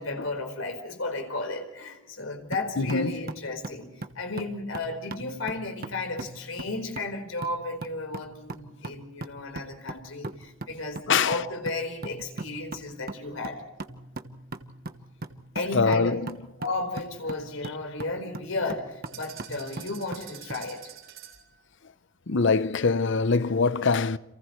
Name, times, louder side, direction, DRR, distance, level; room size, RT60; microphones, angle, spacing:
voice 1, 0.0-13.6 15.5-16.2 16.6-20.8, left 2 dB, 85° left, 4.6 m, -33 dB
sound 1, 2.5-20.7, right 2 dB, 50° right, 1.2 m, -41 dB
voice 2, 2.8-3.2 11.1-11.4 15.7-16.4 22.3-24.2, left 4 dB, 65° left, 0.8 m, -24 dB
sound 2, 19.1-21.5, right 11 dB, 75° right, 5.0 m, -46 dB
30.0 x 28.0 x 3.2 m
head